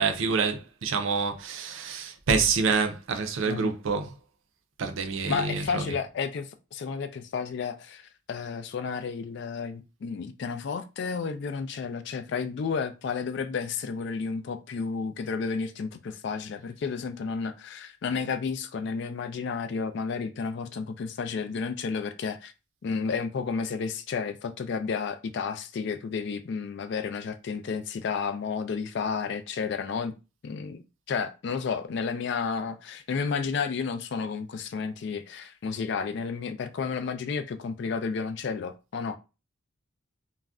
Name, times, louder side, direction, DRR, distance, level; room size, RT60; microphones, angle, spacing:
voice 1, 0.0-4.2 4.8-6.0, right 5 dB, 65° right, 0.5 m, -27 dB
voice 2, 5.3-22.5 22.8-30.1 30.4-39.2, left 5 dB, 55° left, 0.3 m, -32 dB
2.4 x 2.1 x 3.5 m
head